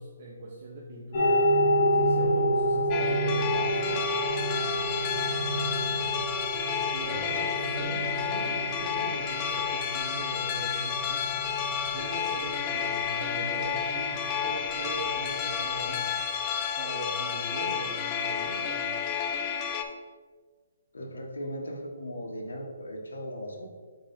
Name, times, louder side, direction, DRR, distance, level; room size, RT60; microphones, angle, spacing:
voice 1, 0.0-1.4 1.9-4.0 6.9-11.3 11.9-14.1 14.4-16.1 16.8-18.9, right 2 dB, 50° right, -3 dB, 1.1 m, -40 dB
sound 1, 1.1-15.9, equal, 45° left, 2.0 m, -29 dB
sound 2, 2.9-19.8, left 8 dB, 25° left, 0.6 m, -31 dB
voice 2, 7.1-7.7 20.9-23.7, equal, 90° left, 0 dB, 1.5 m, -38 dB
6.2 x 4.5 x 4.2 m, 1.5 s
hypercardioid pair, 145°, 0 cm